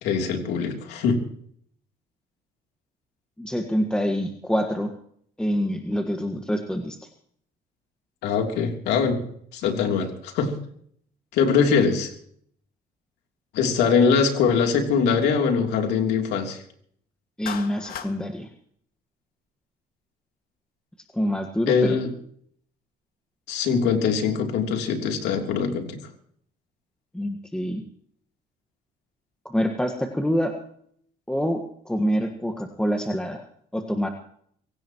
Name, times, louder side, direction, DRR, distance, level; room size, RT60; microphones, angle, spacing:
voice 1, 0.0-1.2 8.2-9.3 9.5-10.5 11.3-12.1 13.5-16.6 21.7-22.1 23.5-26.0, left 6 dB, 85° left, 3 dB, 3.3 m, -22 dB
voice 2, 3.4-4.9 5.4-7.0 17.4-18.5 21.1-22.0 27.1-27.8 29.5-30.5 31.3-31.6 31.9-33.4 33.7-34.1, equal, 5° left, 3 dB, 1.7 m, -26 dB
Clapping, 17.5-18.1, left 8 dB, 60° left, 2.0 m, -35 dB
25.0 x 16.5 x 3.1 m, 0.64 s
cardioid pair, 110°, 17 cm